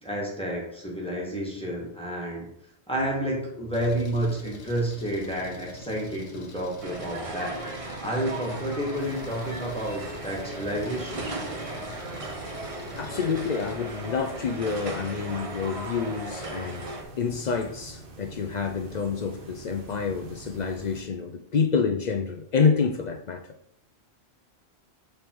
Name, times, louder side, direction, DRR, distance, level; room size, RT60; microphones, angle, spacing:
voice 1, 0.0-2.5 2.9-7.6 8.0-11.3, right 1 dB, 5° left, 1.5 m, -30 dB
Engine, 3.7-13.8, left 3 dB, 85° left, 1.2 m, -45 dB
sound 1, 6.8-17.0, right 2 dB, 35° right, 0.8 m, -37 dB
sound 2, 8.9-21.0, right 3 dB, 55° right, 1.0 m, -46 dB
voice 2, 13.0-16.9 17.2-23.4, left 5 dB, 55° left, 0.5 m, -28 dB
7.0 x 3.3 x 4.5 m
omnidirectional pair, 1.1 m